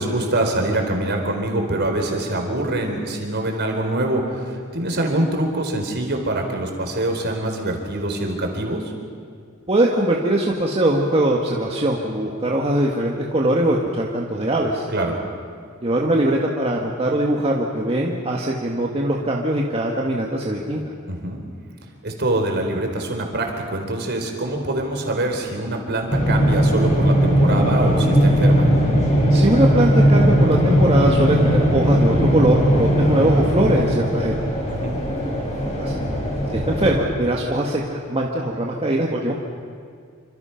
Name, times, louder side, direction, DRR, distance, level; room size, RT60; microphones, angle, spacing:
voice 1, 0.0-8.9 14.9-15.1 21.1-21.4 22.0-28.7 34.7-35.0, right 1 dB, 55° right, 3 dB, 4.0 m, -24 dB
voice 2, 9.7-14.9 15.8-20.8 29.3-34.3 35.8-36.0 36.7-39.3, right 1 dB, 30° right, -1 dB, 1.8 m, -21 dB
sound 1, 26.1-37.0, equal, 35° left, 6.2 m, -18 dB
27.5 x 26.0 x 5.9 m, 2.2 s
head